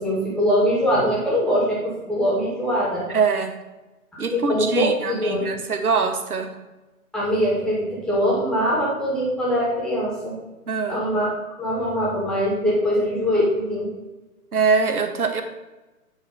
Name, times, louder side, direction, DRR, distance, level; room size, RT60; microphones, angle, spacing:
voice 1, 0.0-3.1 4.1-5.4 7.1-10.4 10.9-11.3 11.6-13.9, equal, ahead, -7 dB, 1.8 m, -22 dB
voice 2, 3.1-3.5 4.2-6.6 10.7-11.0 14.5-15.4, right 5 dB, 80° right, 8 dB, 1.0 m, -23 dB
9.6 x 3.4 x 4.2 m, 1.1 s
figure-of-eight pair, 130°, 44 cm